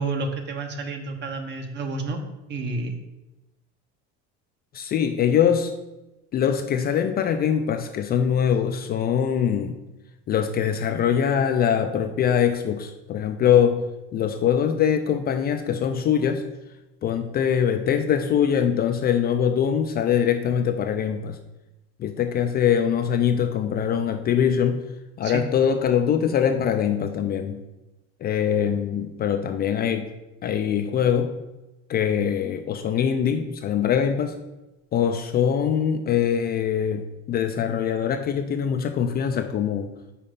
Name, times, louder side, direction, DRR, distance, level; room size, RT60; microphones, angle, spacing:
voice 1, 0.0-2.2 2.5-3.0 25.2-25.4, right 3 dB, 35° right, 5 dB, 0.9 m, -30 dB
voice 2, 4.7-5.7 6.3-9.8 10.3-16.5 17.0-21.4 22.0-24.9 25.2-27.6 28.2-30.1 30.4-31.4 31.9-34.4 34.9-39.9, left 8 dB, 35° left, 7 dB, 0.4 m, -23 dB
5.7 x 4.2 x 5.2 m, 1.0 s
cardioid pair, 135°, 30 cm